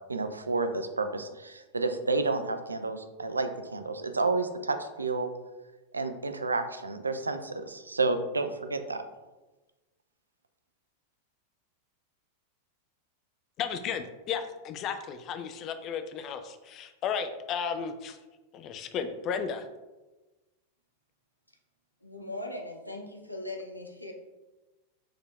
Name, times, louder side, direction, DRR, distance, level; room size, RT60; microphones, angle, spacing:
voice 1, 0.1-5.3 5.9-9.0, right 3 dB, 80° right, 8 dB, 0.3 m, -30 dB
voice 2, 13.6-18.2 18.5-19.7, left 7 dB, 35° left, 8 dB, 0.4 m, -34 dB
voice 3, 22.0-24.1, left 1 dB, 90° left, 2 dB, 0.6 m, -39 dB
6.3 x 3.4 x 2.4 m, 1.1 s
figure-of-eight pair, 90°, 0 cm